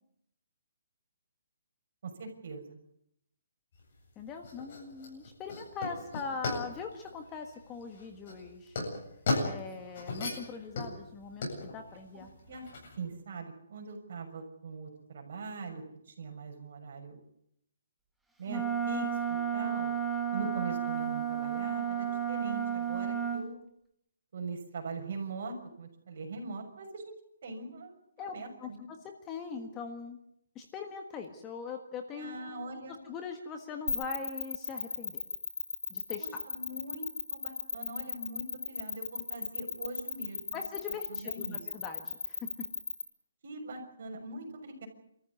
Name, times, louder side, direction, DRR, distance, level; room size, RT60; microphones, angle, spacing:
voice 1, 2.0-2.8 12.1-12.7 13.0-17.2 18.4-19.9 20.3-23.7 24.3-28.9 32.1-33.0 36.2-40.6 41.1-41.6 43.4-44.9, right 3 dB, 45° right, 3 dB, 6.3 m, -42 dB
sound 1, 3.7-13.0, left 2 dB, 40° left, 7.9 m, -37 dB
voice 2, 4.1-8.8 9.4-12.3 28.2-30.2 30.5-32.7 33.0-35.2 35.9-36.4 40.5-42.7, left 5 dB, 15° left, 5 dB, 1.5 m, -41 dB
Wind instrument woodwind instrument, 18.5-23.4, right 8 dB, ahead, 1.4 m, -32 dB
sound 2, 33.9-43.0, left 4 dB, 90° left, 3.5 m, -35 dB
27.0 x 14.5 x 9.6 m, 0.75 s
hypercardioid pair, 175°, 0 cm